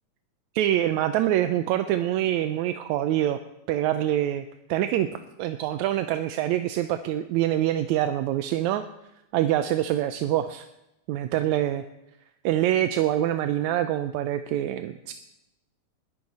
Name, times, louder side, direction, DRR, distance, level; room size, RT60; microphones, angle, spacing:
voice 1, 0.6-3.4 3.7-5.1 5.4-8.8 9.3-10.7 11.1-11.8 12.4-15.1, right 12 dB, 75° right, 9 dB, 1.8 m, -25 dB
20.0 x 13.0 x 4.2 m, 0.89 s
omnidirectional pair, 3.6 m